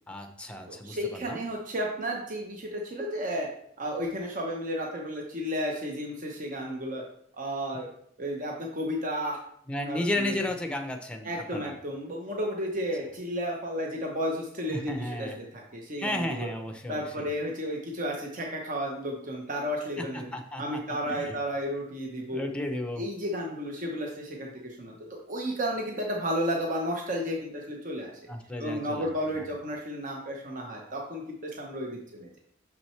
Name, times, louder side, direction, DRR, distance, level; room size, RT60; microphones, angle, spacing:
voice 1, 0.1-1.4 9.7-11.7 14.7-15.4 16.0-17.3 20.0-21.4 22.3-23.1 28.3-29.1 29.3-29.5, left 1 dB, 5° left, 5 dB, 0.7 m, -34 dB
voice 2, 0.7-3.5 3.8-7.0 7.4-7.9 8.2-9.4 9.9-10.4 11.2-16.5 16.9-20.3 20.6-22.4 23.0-24.9 25.3-28.1 28.6-32.4, equal, 40° right, 0 dB, 0.9 m, -33 dB
6.4 x 6.0 x 3.2 m, 0.67 s
head